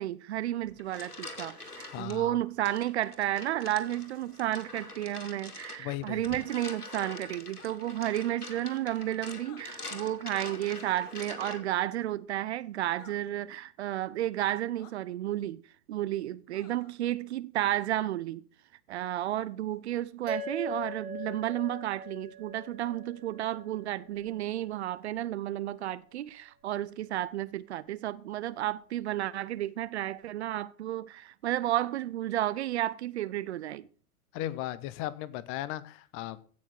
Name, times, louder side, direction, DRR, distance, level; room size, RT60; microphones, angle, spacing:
voice 1, 0.0-15.6 15.9-18.4 18.9-33.9, right 13 dB, 50° right, 0.7 m, -32 dB
sound 1, 0.6-2.2 2.6-11.8, left 2 dB, 85° left, 2.3 m, -44 dB
voice 2, 1.9-2.4 5.8-6.2 34.3-36.5, left 14 dB, 30° left, 0.8 m, -36 dB
sound 2, 7.5-7.8 9.4-9.6 10.9-11.1 13.0-13.2 14.8-14.9 16.5-16.9, left 7 dB, 55° left, 2.2 m, -54 dB
sound 3, 20.3-25.0, left 1 dB, 75° right, 4.0 m, -42 dB
16.0 x 6.4 x 6.2 m
figure-of-eight pair, 100°, 44 cm